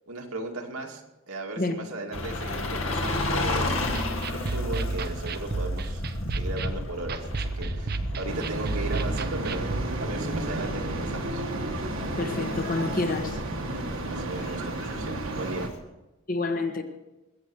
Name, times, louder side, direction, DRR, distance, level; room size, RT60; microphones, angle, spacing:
voice 1, 0.1-3.8 4.3-6.0 6.4-9.6 10.0-11.4 14.1-15.7, right 2 dB, 80° right, 2.3 m, -36 dB
sound 1, 2.1-15.8, left 2 dB, 65° left, 2.0 m, -33 dB
sound 2, 3.9-9.9, right 3 dB, 45° right, 0.7 m, -32 dB
sound 3, 8.3-15.7, right 2 dB, 60° right, 1.5 m, -32 dB
voice 2, 12.2-13.4 16.3-16.8, left 3 dB, 40° left, 1.4 m, -28 dB
21.0 x 8.4 x 6.2 m
head